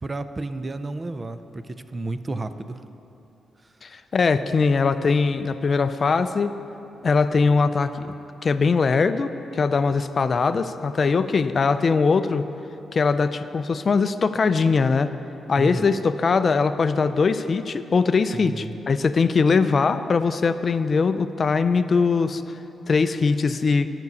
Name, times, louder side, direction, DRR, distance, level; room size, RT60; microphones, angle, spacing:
voice 1, 0.0-2.8 15.6-16.0 18.3-18.8, right 2 dB, 25° right, 11 dB, 0.4 m, -32 dB
voice 2, 3.8-6.5 7.0-8.1 8.4-12.4 12.9-15.1 15.5-22.4 22.9-23.9, left 4 dB, 40° left, 11 dB, 0.4 m, -21 dB
9.5 x 6.0 x 8.2 m, 2.9 s
cardioid pair, 120°, 0 cm